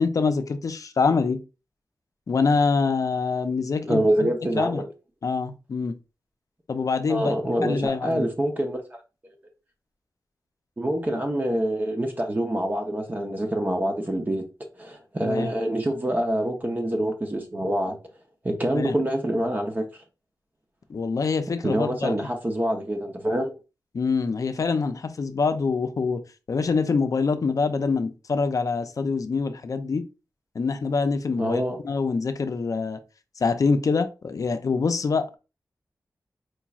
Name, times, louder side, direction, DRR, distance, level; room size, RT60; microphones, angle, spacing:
voice 1, 0.0-1.4 2.3-4.3 4.6-4.8 5.2-6.0 6.7-7.4 7.6-8.2 15.2-15.5 18.7-18.9 20.9-22.1 23.9-26.2 26.5-30.1 30.5-33.0 33.4-35.4, left 4 dB, 55° left, 0.5 m, -25 dB
voice 2, 3.9-4.9 7.1-9.0 10.8-14.4 14.8-18.0 18.4-19.9 21.6-23.5 31.4-31.8, right 1 dB, 25° right, 0.7 m, -26 dB
4.5 x 3.0 x 2.4 m
wide cardioid pair, 95°, 7 cm